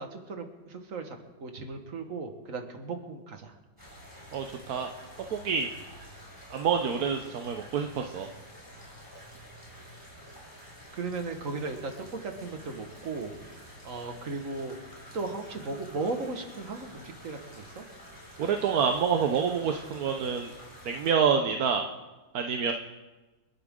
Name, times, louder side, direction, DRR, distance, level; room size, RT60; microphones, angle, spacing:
voice 1, 0.0-3.5 10.9-13.3 13.8-14.8 15.1-17.9, right 3 dB, 45° right, 5 dB, 1.8 m, -36 dB
sound 1, 3.8-21.1, equal, 10° left, 4.7 m, -49 dB
voice 2, 4.3-4.9 5.3-5.7 6.5-8.3 18.4-20.5 20.8-21.9 22.3-22.7, right 6 dB, 60° right, 4 dB, 1.1 m, -27 dB
29.5 x 11.0 x 3.7 m, 1.2 s
omnidirectional pair, 2.2 m